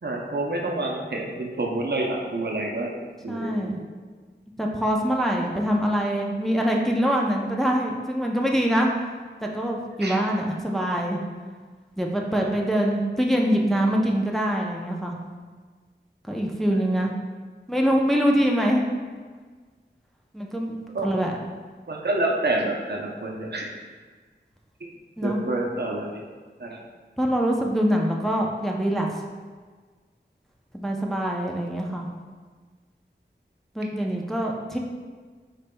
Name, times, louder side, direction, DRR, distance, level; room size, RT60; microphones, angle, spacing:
voice 1, 0.0-2.9 3.2-3.8 10.0-10.2 12.4-12.5 16.7-16.8 20.9-21.3 21.9-23.7 24.8-24.9 25.2-26.2 26.6-26.8, right 2 dB, 65° right, 0 dB, 0.6 m, -28 dB
voice 2, 3.3-3.8 4.6-8.9 9.4-11.2 12.0-15.2 16.3-17.1 17.7-18.9 20.3-20.8 21.0-21.4 25.2-25.4 27.2-29.1 30.7-32.1 33.7-34.8, equal, ahead, 0 dB, 0.5 m, -24 dB
5.1 x 4.0 x 2.2 m, 1.5 s
wide cardioid pair, 40°, 19 cm